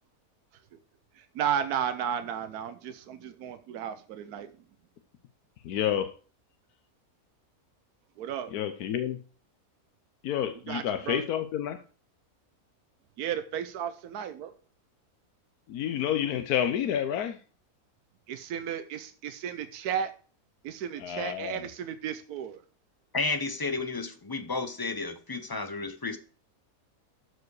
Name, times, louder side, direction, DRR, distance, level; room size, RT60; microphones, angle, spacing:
voice 1, 1.2-4.5 8.2-8.5 10.7-11.3 13.2-14.5 18.3-20.1 20.6-22.6, right 9 dB, 85° right, 10 dB, 1.2 m, -33 dB
voice 2, 5.6-6.1 8.5-9.2 10.2-11.8 15.7-17.4 21.0-21.5, left 10 dB, 85° left, 8 dB, 1.3 m, -29 dB
voice 3, 23.1-26.2, left 3 dB, 20° left, 10 dB, 0.6 m, -32 dB
12.5 x 4.8 x 4.7 m, 0.39 s
omnidirectional pair, 1.6 m